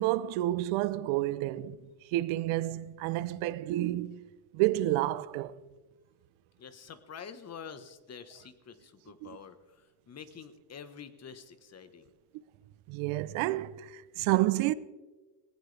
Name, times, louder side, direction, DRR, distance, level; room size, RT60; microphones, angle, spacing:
voice 1, 0.0-1.8 2.1-4.2 4.5-5.5 9.2-9.4 12.9-14.7, right 16 dB, 80° right, 0.9 m, -29 dB
voice 2, 6.6-12.1, left 7 dB, 30° left, 1.4 m, -47 dB
19.0 x 18.0 x 3.4 m
cardioid pair, 120°, 48 cm